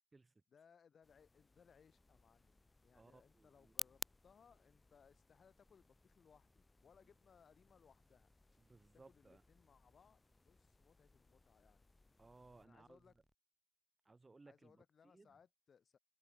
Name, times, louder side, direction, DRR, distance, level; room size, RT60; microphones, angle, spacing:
voice 1, 0.5-8.3 8.9-11.9 12.6-13.2 14.5-16.0, left 6 dB, 70° left, 1.9 m, -69 dB
sound 1, 1.0-12.7, left 3 dB, 30° left, 0.5 m, -57 dB
sound 2, 1.9-13.3, equal, 5° right, 5.1 m, -79 dB
voice 2, 2.9-3.8 8.6-9.4 12.2-13.0 14.0-14.8 15.1-15.3, right 3 dB, 30° right, 1.3 m, -63 dB
cardioid pair, 80°, 0 cm